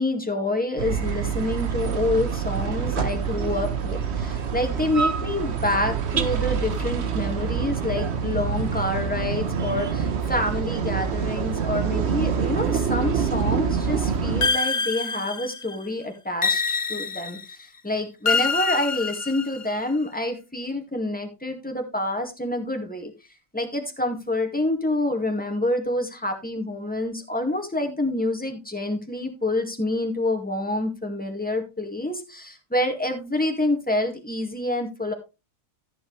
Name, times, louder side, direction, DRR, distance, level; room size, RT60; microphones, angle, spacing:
voice 1, 0.0-23.1 23.5-35.1, left 1 dB, 5° left, 3 dB, 2.1 m, -27 dB
sound 1, 0.8-14.5, right 6 dB, 50° right, 1.2 m, -26 dB
sound 2, 14.4-15.8 16.4-17.6 18.3-19.8, left 4 dB, 35° left, 0.5 m, -25 dB
13.5 x 7.7 x 3.3 m, 0.28 s
omnidirectional pair, 1.5 m